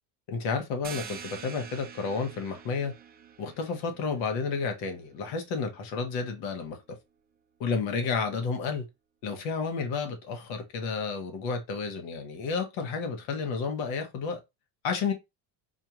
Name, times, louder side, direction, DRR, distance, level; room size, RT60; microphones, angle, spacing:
voice 1, 0.3-2.9 3.4-6.8 7.6-8.8 9.2-14.4 14.8-15.1, left 5 dB, 70° left, 1.3 m, -31 dB
sound 1, 0.8-6.2, right 8 dB, 20° right, 0.4 m, -47 dB
4.3 x 2.5 x 3.0 m
cardioid pair, 125°, 48 cm